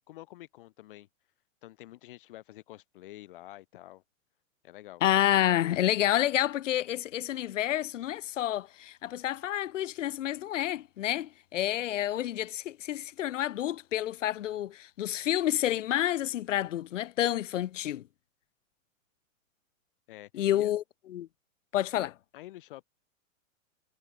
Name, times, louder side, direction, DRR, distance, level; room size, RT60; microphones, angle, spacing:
voice 1, 0.1-1.1 1.6-4.0 4.6-5.0 20.1-20.7 21.9-22.8, left 16 dB, 40° left, 4.5 m, -48 dB
voice 2, 5.0-18.0 20.3-20.8 21.1-21.3 21.7-22.1, left 12 dB, 65° left, 0.8 m, -29 dB
hypercardioid pair, 170°, 40 cm